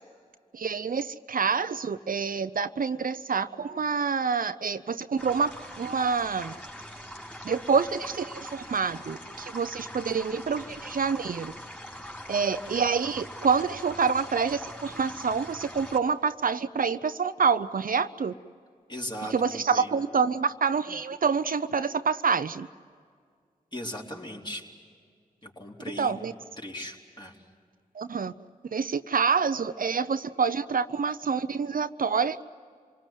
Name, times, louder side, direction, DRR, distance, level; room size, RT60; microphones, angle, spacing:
voice 1, 0.5-5.5 5.8-6.5 7.4-11.5 12.3-18.3 19.3-22.7 26.0-26.3 28.0-28.3 28.7-32.4, right 5 dB, 65° right, 11 dB, 0.7 m, -27 dB
sound 1, 5.2-16.0, equal, 10° left, 4.1 m, -42 dB
voice 2, 18.9-19.9 23.7-24.7 25.4-26.2 26.6-27.4, left 1 dB, 30° left, -1 dB, 4.1 m, -38 dB
27.0 x 19.5 x 9.2 m, 2.1 s
cardioid pair, 40°, 16 cm